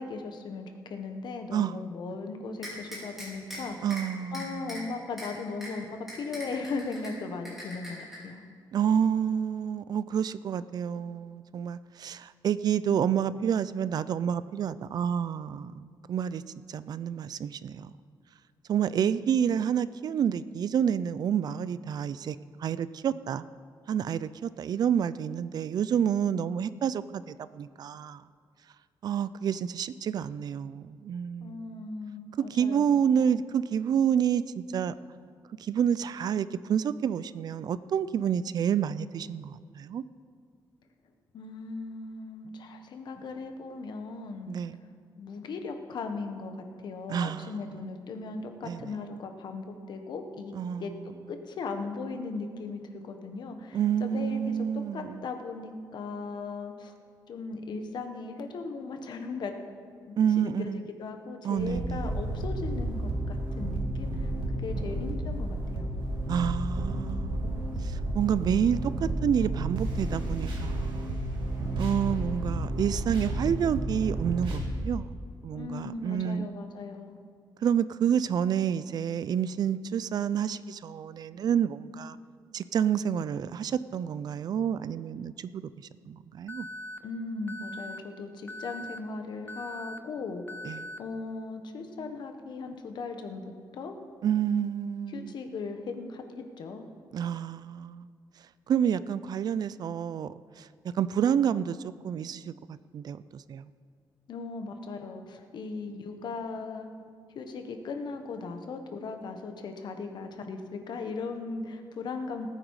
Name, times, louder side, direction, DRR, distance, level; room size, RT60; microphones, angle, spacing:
voice 1, 0.0-3.8 4.3-8.4 31.4-33.0 41.3-44.6 45.2-50.9 51.3-54.7 54.9-56.9 57.3-59.5 60.1-65.9 75.5-77.2 87.0-90.4 91.0-94.0 95.1-96.9 104.3-106.9 107.3-112.5, left 4 dB, 65° left, 6 dB, 1.3 m, -38 dB
sound 1, 2.6-3.6 3.9-4.0 4.3-4.8 5.2-5.3 5.6-5.7 6.1-7.1 7.4-8.2, equal, 5° right, 4.4 m, -40 dB
voice 2, 3.8-4.7 8.7-16.4 16.7-17.9 18.7-23.4 23.9-28.2 29.0-31.8 32.5-34.9 35.6-40.0 44.5-44.8 47.1-47.6 48.6-48.9 50.6-50.9 53.7-55.3 60.2-60.8 61.4-62.2 66.3-67.5 67.8-71.1 71.8-75.1 75.4-76.5 77.6-82.2 82.5-85.6 86.1-86.7 90.6-90.9 94.2-95.3 97.1-98.1 98.7-100.7 100.9-103.7, right 8 dB, 55° right, 16 dB, 0.4 m, -29 dB
sound 2, 61.6-74.6, right 1 dB, 85° right, 2.7 m, -32 dB
Alarm, 86.5-87.0 87.5-88.0 88.5-89.0 89.5-90.0 90.5-91.0, left 2 dB, 25° left, 0.8 m, -40 dB
19.0 x 9.0 x 4.8 m, 2.1 s
wide cardioid pair, 150°, 8 cm